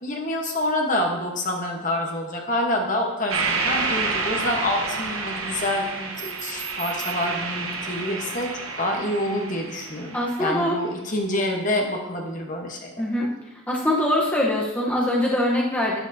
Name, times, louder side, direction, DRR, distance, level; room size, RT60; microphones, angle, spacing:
voice 1, 0.0-8.5 8.8-12.9, left 1 dB, 35° left, 1 dB, 1.2 m, -27 dB
sound 1, 3.3-10.6, right 4 dB, 80° right, 1.4 m, -29 dB
voice 2, 10.1-10.8 13.0-13.3 13.7-16.0, left 1 dB, 5° left, -4 dB, 1.0 m, -23 dB
11.5 x 9.1 x 2.8 m, 1.1 s
head